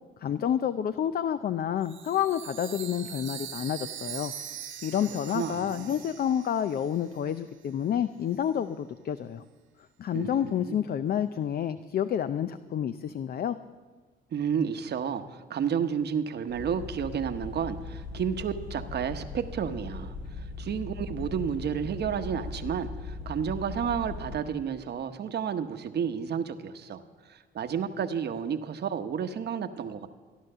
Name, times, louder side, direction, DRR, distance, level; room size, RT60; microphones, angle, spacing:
voice 1, 0.2-4.3 4.8-9.4 10.0-13.6, left 9 dB, 50° left, 12 dB, 0.5 m, -29 dB
Chime, 1.8-7.4, right 10 dB, 80° right, 1.5 m, -42 dB
voice 2, 5.3-5.9 10.1-10.7 14.3-27.0 27.3-30.1, right 7 dB, 55° right, 8 dB, 1.0 m, -31 dB
sound 1, 16.5-24.3, left 3 dB, 75° left, 3.4 m, -39 dB
14.5 x 11.0 x 6.6 m, 1.4 s
cardioid pair, 90°, 20 cm